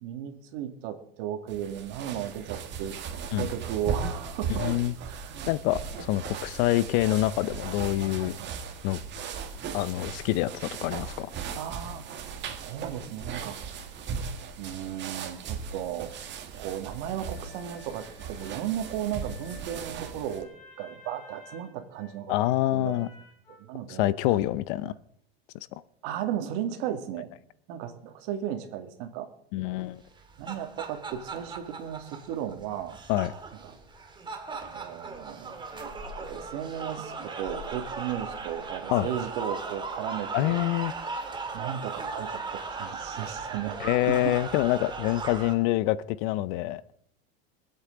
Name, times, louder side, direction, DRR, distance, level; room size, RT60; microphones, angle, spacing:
voice 1, 0.0-4.7 5.0-5.5 5.9-6.0 8.2-8.5 11.6-13.6 14.6-16.1 16.6-20.5 20.8-22.3 22.7-23.1 23.6-24.1 24.9-25.0 26.0-27.3 27.7-29.3 30.4-33.0 33.6-33.7 34.7-35.6 36.2-40.6 41.5-44.3, right 10 dB, 60° right, 6 dB, 2.2 m, -35 dB
sound 1, 1.5-20.4, right 6 dB, 35° right, 1.8 m, -37 dB
voice 2, 4.6-4.9 5.5-8.3 8.8-9.0 9.7-11.3 22.3-23.1 23.9-24.9 29.5-30.0 33.1-33.3 38.9-39.1 40.3-40.9 43.8-46.8, left 15 dB, 60° left, 18 dB, 0.7 m, -26 dB
sound 2, 17.3-23.6, left 2 dB, 10° left, 5.8 m, -52 dB
sound 3, 30.1-45.5, right 4 dB, 15° right, 1.8 m, -38 dB
24.5 x 8.3 x 3.9 m, 0.68 s
supercardioid pair, 125°, 31 cm